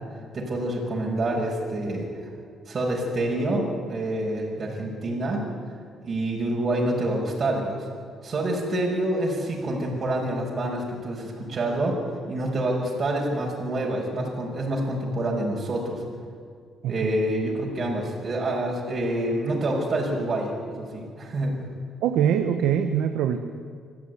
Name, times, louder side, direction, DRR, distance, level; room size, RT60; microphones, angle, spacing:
voice 1, 0.3-2.1 2.7-5.4 6.0-7.9 8.2-12.0 12.3-16.0 16.9-21.6, right 1 dB, 45° right, -3 dB, 6.0 m, -27 dB
voice 2, 22.0-23.4, right 9 dB, 85° right, 7 dB, 1.3 m, -23 dB
26.5 x 15.0 x 9.7 m, 2.1 s
cardioid pair, 90°, 0 cm